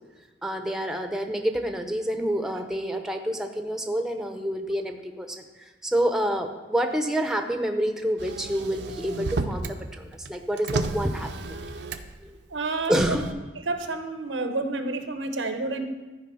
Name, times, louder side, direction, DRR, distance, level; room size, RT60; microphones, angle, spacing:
voice 1, 0.4-11.6 12.2-12.4 12.9-13.3, equal, 5° right, 5 dB, 0.6 m, -28 dB
Motor vehicle (road), 8.2-9.8 10.1-12.2 12.8-13.3, right 3 dB, 65° right, 0.6 m, -32 dB
voice 2, 12.5-13.2 13.6-15.9, right 3 dB, 85° right, 7 dB, 0.9 m, -29 dB
13.0 x 5.0 x 5.5 m, 1.2 s
head